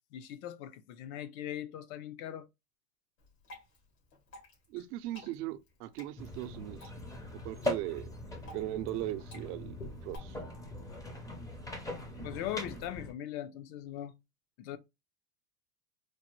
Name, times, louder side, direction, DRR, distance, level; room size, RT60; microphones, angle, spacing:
voice 1, 0.1-2.5 12.2-14.1 14.6-14.8, left 11 dB, 65° left, 0.7 m, -40 dB
Water / Drip, 3.2-10.2, left 1 dB, 85° left, 2.5 m, -55 dB
voice 2, 4.7-6.9 7.4-8.1 8.5-9.8 10.0-10.4, right 15 dB, 75° right, 0.6 m, -38 dB
sound 1, 6.2-13.1, left 1 dB, 10° left, 0.5 m, -41 dB
4.6 x 2.1 x 3.0 m
supercardioid pair, 130°, 47 cm